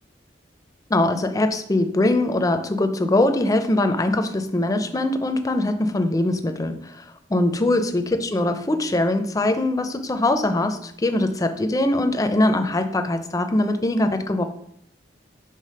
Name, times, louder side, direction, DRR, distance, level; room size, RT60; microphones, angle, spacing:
voice 1, 0.9-7.0 7.3-14.5, left 1 dB, 20° left, 8 dB, 0.4 m, -22 dB
5.0 x 3.4 x 5.5 m, 0.71 s
head